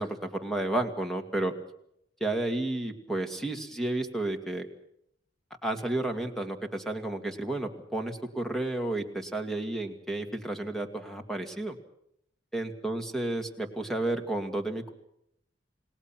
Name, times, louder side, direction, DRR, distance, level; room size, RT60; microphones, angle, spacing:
voice 1, 0.0-1.5 2.2-4.7 5.6-11.8 12.5-14.9, right 2 dB, ahead, 5 dB, 2.3 m, -32 dB
29.5 x 18.5 x 6.0 m, 0.75 s
head